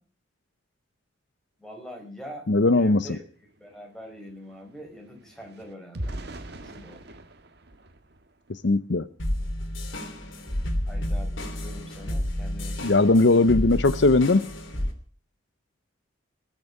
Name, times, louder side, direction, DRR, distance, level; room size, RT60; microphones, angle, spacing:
voice 1, 1.6-2.5 2.7-3.2 3.6-7.1 10.8-13.7, equal, 5° left, 1 dB, 4.7 m, -44 dB
voice 2, 2.5-3.1 8.5-9.1 12.8-14.5, left 2 dB, 60° left, 14 dB, 0.7 m, -19 dB
sound 1, 3.0-3.1 3.4-8.9 9.4-9.6 9.9-10.2, right 1 dB, 55° right, 1.7 m, -42 dB
sound 2, 9.2-14.9, left 1 dB, 80° left, 3.2 m, -30 dB
19.5 x 7.5 x 9.5 m, 0.43 s
head